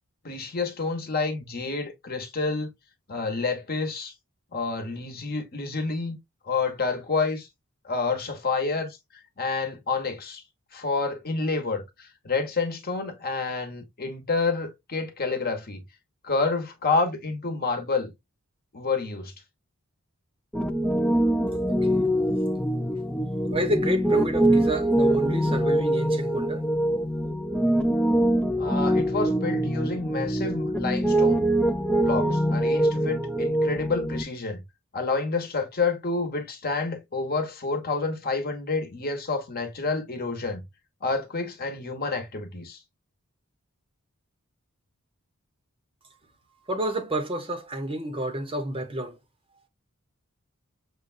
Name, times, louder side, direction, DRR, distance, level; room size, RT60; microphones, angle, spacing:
voice 1, 0.2-2.7 3.1-4.1 4.5-6.2 6.5-7.5 7.8-9.0 9.4-10.4 10.7-15.8 16.2-18.1 18.7-19.3 28.6-31.4 32.0-34.6 34.9-40.6 41.0-42.8, left 4 dB, 45° left, 1.0 m, -29 dB
Piano, 20.5-34.2, right 1 dB, 5° left, 0.3 m, -24 dB
voice 2, 21.7-22.1 23.5-26.7 46.6-49.2, right 1 dB, 25° right, 0.8 m, -30 dB
6.5 x 2.3 x 2.5 m
head